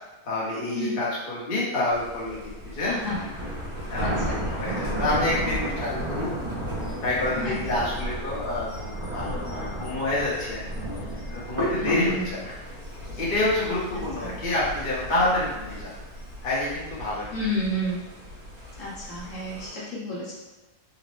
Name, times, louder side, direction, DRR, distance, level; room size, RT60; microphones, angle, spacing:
voice 1, 0.2-2.9 3.9-6.3 7.0-10.6 11.3-12.6 13.1-15.9 16.4-17.3, left 2 dB, 45° left, -7 dB, 1.0 m, -28 dB
Thunder, 1.9-19.7, right 1 dB, 75° right, 1.8 m, -34 dB
voice 2, 4.0-4.4 7.4-7.6 11.7-12.2 14.2-14.3 17.3-18.0 18.8-20.4, left 1 dB, 65° left, -7 dB, 1.3 m, -31 dB
Hands, 11.6-16.7, equal, 30° right, 0.6 m, -36 dB
3.9 x 2.1 x 3.0 m, 1.1 s
omnidirectional pair, 1.5 m